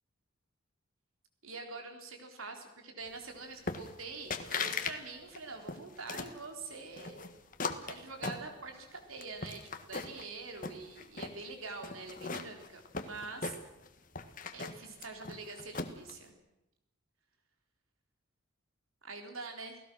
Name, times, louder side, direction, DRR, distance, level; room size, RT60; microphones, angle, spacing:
voice 1, 1.4-7.3 7.9-13.6 14.5-16.3 19.0-19.8, right 3 dB, 80° right, 4 dB, 3.9 m, -45 dB
sound 1, 3.7-4.0 4.3-5.0 5.3-6.4 7.0-8.8 9.2-10.3 10.6-11.4 11.8-13.9 14.2-16.1, left 4 dB, 40° left, 1.5 m, -38 dB
29.5 x 17.5 x 6.3 m, 0.91 s
head